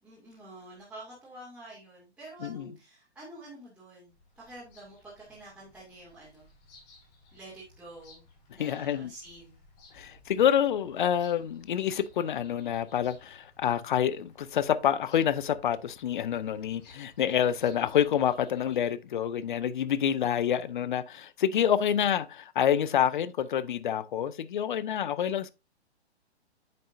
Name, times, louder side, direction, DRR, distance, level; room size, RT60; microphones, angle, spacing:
voice 1, 0.0-6.5 7.3-8.2 8.5-9.6, right 1 dB, 5° right, 2.5 m, -48 dB
Bird vocalization bird call bird song, 4.1-18.8, left 3 dB, 30° left, 3.5 m, -58 dB
voice 2, 8.6-9.1 9.9-25.5, left 9 dB, 45° left, 0.6 m, -27 dB
8.7 x 6.4 x 2.6 m
figure-of-eight pair, 125°, 33 cm